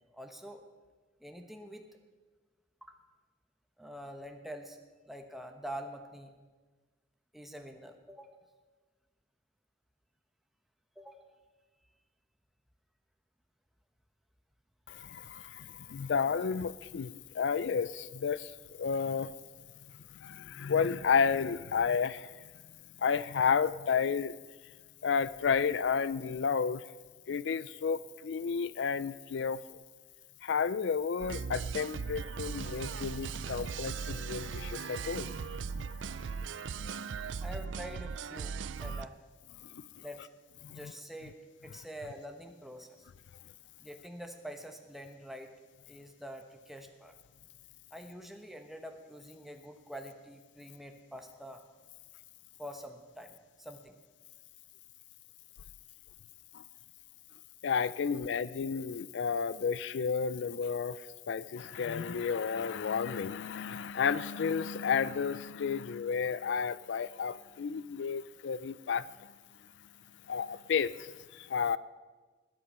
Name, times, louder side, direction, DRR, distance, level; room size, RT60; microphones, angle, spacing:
voice 1, 0.1-0.6 1.2-1.9 2.8-3.0 3.8-4.8 5.1-6.3 7.3-8.4 11.0-11.3 37.4-39.2 40.0-40.3 40.7-41.4 41.6-43.1 43.8-45.5 45.9-47.2 47.9-51.6 52.6-54.0, equal, ahead, 4 dB, 0.9 m, -46 dB
voice 2, 14.9-18.5 18.8-19.3 20.2-22.3 23.0-24.4 25.0-26.8 27.3-29.6 30.4-35.3 39.7-39.8 40.6-40.9 56.5-56.6 57.6-61.0 61.3-69.1 70.3-71.8, left 6 dB, 70° left, 17 dB, 0.4 m, -31 dB
sound 1, 31.2-39.0, right 6 dB, 80° right, 0.4 m, -38 dB
20.0 x 8.8 x 5.5 m, 1.3 s
head